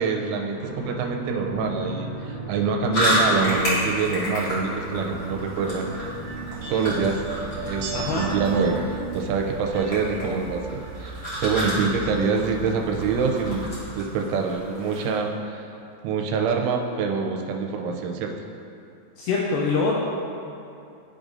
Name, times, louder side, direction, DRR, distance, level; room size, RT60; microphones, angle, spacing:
voice 1, 0.0-5.9 6.7-7.2 7.6-13.7 13.9-15.6 16.0-18.3, right 5 dB, 85° right, 2 dB, 3.0 m, -25 dB
sound 1, 0.5-13.8, right 3 dB, 70° left, 2.8 m, -36 dB
sound 2, 2.9-15.2, equal, 50° left, 1.6 m, -31 dB
sound 3, 5.7-10.9 11.2-12.1 12.4-12.5, right 5 dB, 65° right, 2.6 m, -37 dB
voice 2, 7.9-8.2 19.2-19.9, left 4 dB, 90° left, -4 dB, 2.5 m, -24 dB
14.0 x 5.0 x 2.6 m, 2.6 s
omnidirectional pair, 5.6 m